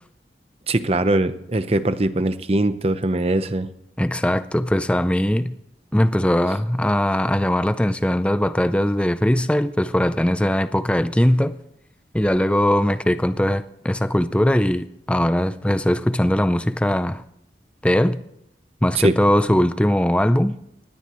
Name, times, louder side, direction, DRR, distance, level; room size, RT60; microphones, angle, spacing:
voice 1, 0.7-3.7 18.9-19.1, right 1 dB, 35° right, 0.8 m, -21 dB
voice 2, 4.0-5.5 5.9-11.6 12.1-17.2 17.8-18.2 18.8-20.6, left 1 dB, 5° left, 0.4 m, -20 dB
19.5 x 16.5 x 3.1 m
head